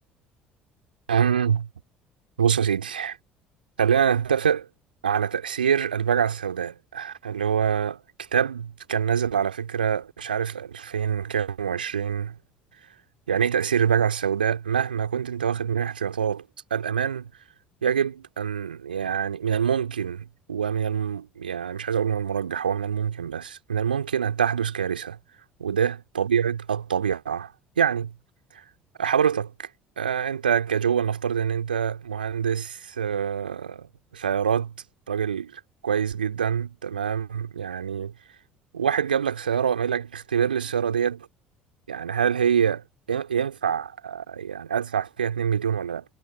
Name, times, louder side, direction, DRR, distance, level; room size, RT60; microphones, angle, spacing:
voice 1, 1.1-1.7 2.4-3.2 3.8-4.7 5.0-8.0 8.3-12.3 13.3-16.4 16.7-17.3 17.8-25.2 25.6-28.1 28.5-28.6 29.0-29.7 30.0-34.7 35.1-38.1 38.7-41.3 41.9-46.0, right 8 dB, 80° right, 2.4 m, -25 dB
figure-of-eight pair, 55°, 5 cm